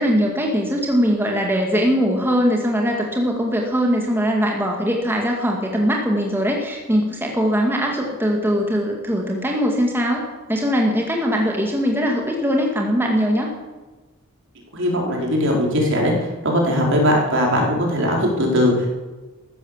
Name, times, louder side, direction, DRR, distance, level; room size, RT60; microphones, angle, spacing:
voice 1, 0.0-10.2 10.5-13.5, equal, 10° right, 0 dB, 2.1 m, -21 dB
voice 2, 14.7-18.9, equal, 60° right, -1 dB, 4.5 m, -19 dB
15.0 x 12.0 x 7.3 m, 1.2 s
head